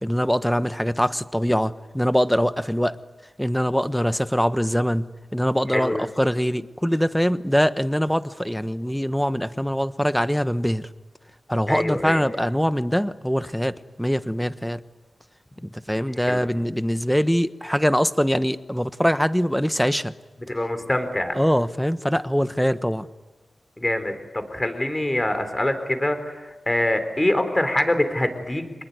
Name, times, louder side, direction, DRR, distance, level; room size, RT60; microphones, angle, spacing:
voice 1, 0.0-3.0 3.4-10.9 11.5-14.8 15.9-20.1 21.3-23.1, equal, 5° left, 12 dB, 1.1 m, -23 dB
voice 2, 5.7-6.1 11.7-12.2 16.3-16.5 20.5-21.4 23.8-28.6, left 1 dB, 20° left, 9 dB, 4.1 m, -24 dB
26.0 x 20.5 x 9.6 m, 1.2 s
wide cardioid pair, 65°, 0 cm